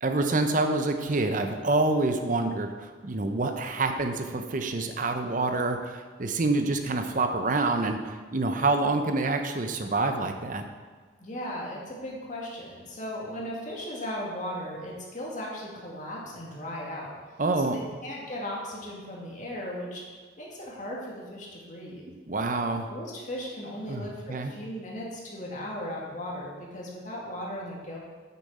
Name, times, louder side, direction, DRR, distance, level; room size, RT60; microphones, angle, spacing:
voice 1, 0.0-10.6 17.4-17.8 22.3-22.9 23.9-24.5, right 2 dB, 45° right, 6 dB, 0.7 m, -27 dB
voice 2, 11.2-17.1 17.6-20.0 20.4-22.1 22.9-28.0, left 1 dB, 40° left, -3 dB, 1.9 m, -37 dB
8.5 x 7.0 x 4.2 m, 1.5 s
head